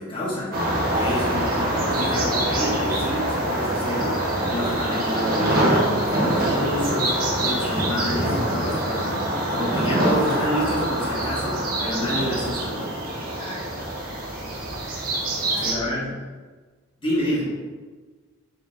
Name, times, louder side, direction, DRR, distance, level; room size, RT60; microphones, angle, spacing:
voice 1, 0.0-12.9 15.6-16.1 17.0-17.5, left 1 dB, 25° left, -7 dB, 1.5 m, -29 dB
sound 1, 0.5-15.7, right 1 dB, 40° right, 1.3 m, -24 dB
voice 2, 13.3-13.8 14.3-14.7 15.2-15.7 17.2-17.5, left 1 dB, 40° left, -10 dB, 1.5 m, -41 dB
5.4 x 3.8 x 4.7 m, 1.4 s
head